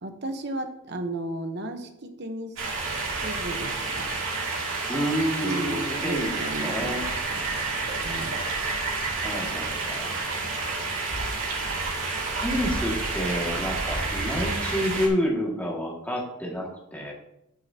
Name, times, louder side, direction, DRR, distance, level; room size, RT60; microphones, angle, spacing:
voice 1, 0.0-2.5 3.2-4.1 5.4-6.9 7.3-7.6 8.0-8.4, right 1 dB, 55° right, 6 dB, 1.1 m, -34 dB
sound 1, 2.6-15.1, right 3 dB, 75° right, 2.5 m, -29 dB
voice 2, 4.9-7.0 9.2-10.1 12.4-17.1, equal, 10° left, -3 dB, 2.2 m, -29 dB
14.0 x 6.7 x 2.9 m, 0.83 s
head